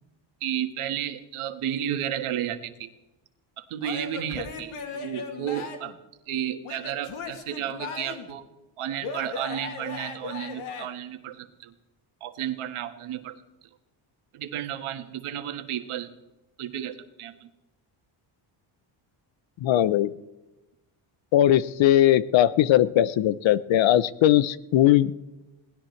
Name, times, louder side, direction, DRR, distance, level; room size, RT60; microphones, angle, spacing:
voice 1, 0.4-2.9 3.6-6.0 6.3-8.4 8.8-11.7 12.2-13.4 14.3-16.1 16.6-17.5, right 10 dB, 85° right, 8 dB, 1.6 m, -32 dB
Male speech man speaking / Yell / Laughter, 3.8-6.0 6.6-8.4 9.0-10.9, left 4 dB, 85° left, 2.4 m, -37 dB
voice 2, 19.6-20.1 21.3-25.1, left 12 dB, 65° left, 17 dB, 0.8 m, -19 dB
22.5 x 19.0 x 3.2 m, 1.0 s
cardioid pair, 160°, 49 cm